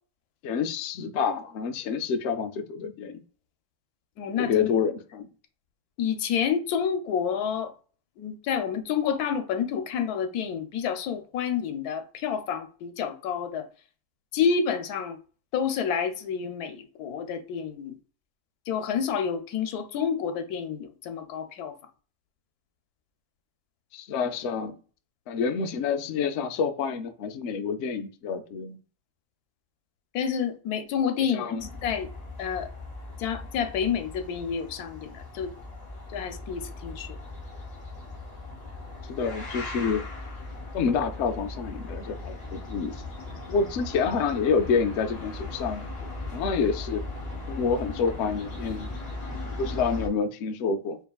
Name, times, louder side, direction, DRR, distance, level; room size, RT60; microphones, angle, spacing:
voice 1, 0.4-3.2 4.4-5.3 23.9-24.7 25.3-28.8 31.3-31.7 39.1-40.0 40.7-43.0 43.5-47.0 47.5-48.9 49.6-51.0, left 5 dB, 70° left, 0.7 m, -28 dB
voice 2, 4.2-4.7 6.0-7.7 8.2-13.7 14.3-15.2 15.5-18.0 18.7-21.8 30.1-32.1 32.4-32.7 33.2-35.5 36.1-37.2, left 7 dB, 85° left, 1.1 m, -29 dB
sound 1, 31.6-50.1, left 2 dB, 25° left, 1.2 m, -38 dB
4.8 x 2.7 x 2.3 m
omnidirectional pair, 1.6 m